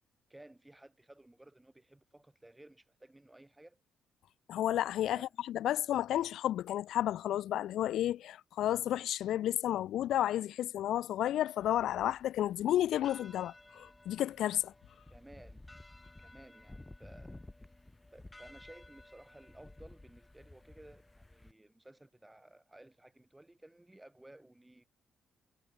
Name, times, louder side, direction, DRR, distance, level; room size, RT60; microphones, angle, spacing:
voice 1, 0.3-3.8 5.1-5.3 15.1-15.6 16.2-17.4 18.1-24.9, right 1 dB, 10° right, 1.8 m, -57 dB
voice 2, 4.5-14.7, left 12 dB, 80° left, 0.3 m, -32 dB
sound 1, 11.6-21.5, left 2 dB, 15° left, 0.9 m, -54 dB
cardioid pair, 90°, 0 cm